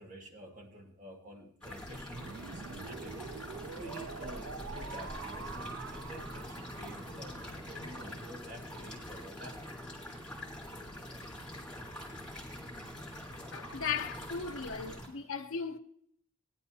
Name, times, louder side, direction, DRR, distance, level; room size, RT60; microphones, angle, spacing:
voice 1, 0.0-3.2 3.7-9.7, equal, 35° right, 1.5 m, -49 dB
sound 1, 1.6-15.1, left 1 dB, 5° left, 3.4 m, -44 dB
sound 2, 2.1-8.1, right 6 dB, 65° right, 0.4 m, -46 dB
voice 2, 13.3-15.8, left 6 dB, 70° left, 0.9 m, -37 dB
18.5 x 10.5 x 2.8 m
head